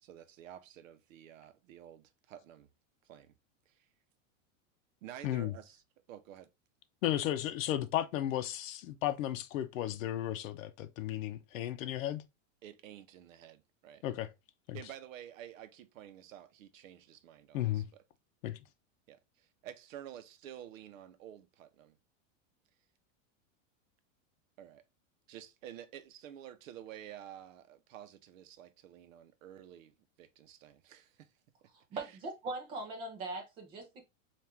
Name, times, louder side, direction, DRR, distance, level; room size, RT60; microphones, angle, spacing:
voice 1, 0.0-2.7 3.1-3.3 3.7-3.8 5.0-5.8 6.1-6.5 12.6-14.0 14.7-17.8 19.1-22.0 24.6-24.8 25.3-31.3 31.9-32.0, right 11 dB, 85° right, 0.8 m, -51 dB
voice 2, 5.2-5.5 7.0-12.3 14.0-14.3 14.7-14.8 17.5-17.9 18.4-18.6, left 12 dB, 85° left, 0.6 m, -34 dB
voice 3, 31.7-34.0, right 2 dB, 15° right, 0.4 m, -41 dB
4.4 x 2.5 x 3.4 m
supercardioid pair, 175°, 39 cm